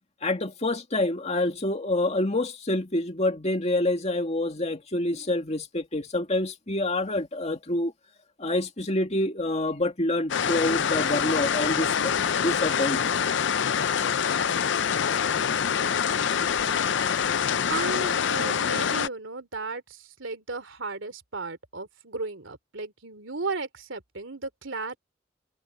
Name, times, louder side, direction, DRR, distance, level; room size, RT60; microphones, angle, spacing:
voice 1, 0.2-7.9 8.4-13.1, left 1 dB, 35° left, 2.3 m, -27 dB
sound 1, 10.3-19.1, left 7 dB, 65° left, 0.5 m, -25 dB
voice 2, 17.7-25.0, right 3 dB, 75° right, 3.0 m, -35 dB
head